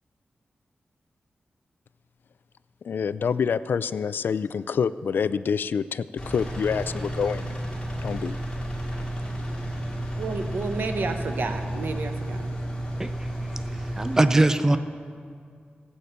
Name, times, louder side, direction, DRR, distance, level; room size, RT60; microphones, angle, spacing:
voice 1, 2.9-7.4 8.0-8.4, left 6 dB, 70° left, 16 dB, 0.3 m, -27 dB
Engine, 6.2-14.2, right 1 dB, 25° left, 2.5 m, -32 dB
voice 2, 10.2-12.5, right 3 dB, 65° right, 6 dB, 1.0 m, -31 dB
voice 3, 14.0-14.8, right 2 dB, 15° right, 10 dB, 0.4 m, -21 dB
16.5 x 8.6 x 6.7 m, 2.2 s
wide cardioid pair, 175°, 4 cm